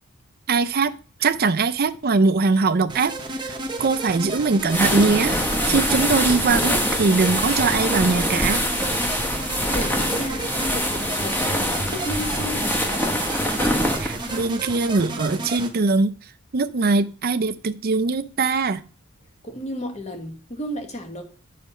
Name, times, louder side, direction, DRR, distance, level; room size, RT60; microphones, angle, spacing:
voice 1, 0.5-0.9 1.2-3.1 3.4-5.4 5.6-8.6 14.0-16.1 16.5-18.8, right 4 dB, 45° right, 0.5 m, -21 dB
sound 1, 2.9-15.7, right 2 dB, 20° right, 1.0 m, -32 dB
sound 2, 4.6-14.5, equal, 10° left, 1.3 m, -24 dB
voice 2, 9.7-13.1 19.4-21.2, equal, 30° left, 1.4 m, -33 dB
8.1 x 4.2 x 5.6 m
head